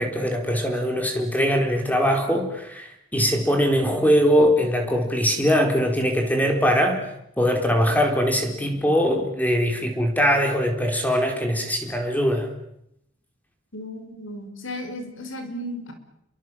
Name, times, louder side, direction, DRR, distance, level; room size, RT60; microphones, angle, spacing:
voice 1, 0.0-7.0 7.4-12.5, equal, 10° left, 4 dB, 4.2 m, -21 dB
voice 2, 13.7-15.9, equal, 90° left, 7 dB, 5.4 m, -34 dB
29.5 x 23.0 x 7.6 m, 0.79 s
head